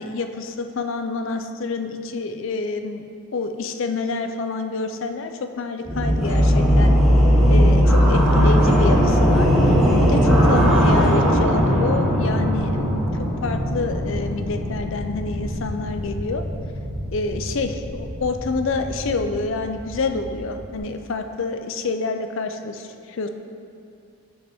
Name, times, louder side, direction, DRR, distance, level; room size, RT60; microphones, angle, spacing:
voice 1, 0.0-3.0 3.3-6.9 7.5-13.1 13.4-16.4 17.1-23.3, left 3 dB, 60° left, 7 dB, 0.4 m, -27 dB
sound 1, 5.9-20.7, equal, ahead, 1.2 m, -19 dB
9.3 x 5.0 x 3.5 m, 2.5 s
head